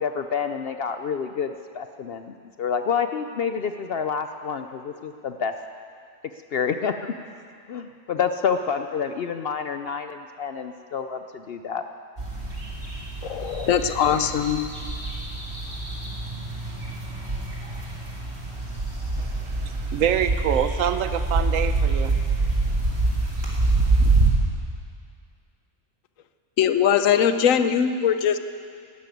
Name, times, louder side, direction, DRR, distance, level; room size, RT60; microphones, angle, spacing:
voice 1, 0.0-5.5 6.5-7.1 7.7-11.8, left 6 dB, 60° left, 8 dB, 0.7 m, -28 dB
sound 1, 12.2-24.3, right 3 dB, 45° right, 2.8 m, -26 dB
voice 2, 13.2-14.6 26.6-28.4, left 8 dB, 85° left, 10 dB, 1.1 m, -21 dB
voice 3, 19.2-22.1 24.0-24.3, right 9 dB, 85° right, 10 dB, 1.0 m, -26 dB
12.0 x 12.0 x 9.1 m, 2.3 s
omnidirectional pair, 1.3 m